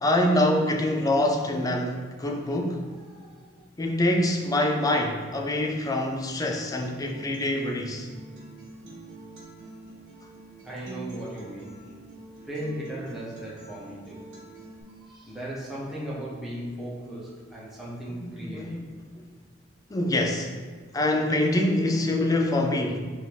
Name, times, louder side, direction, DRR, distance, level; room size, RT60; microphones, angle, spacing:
voice 1, 0.0-2.9 3.8-8.1 18.2-18.9 19.2-19.3 19.9-20.5 20.9-23.0, left 1 dB, 20° left, 2 dB, 0.4 m, -25 dB
voice 2, 2.9-3.7 10.6-11.9 12.4-14.3 15.0-18.8, right 1 dB, ahead, -7 dB, 0.8 m, -37 dB
Acoustic guitar, 6.8-14.8, right 2 dB, 75° right, 1.3 m, -45 dB
3.5 x 2.7 x 4.6 m, 1.5 s
head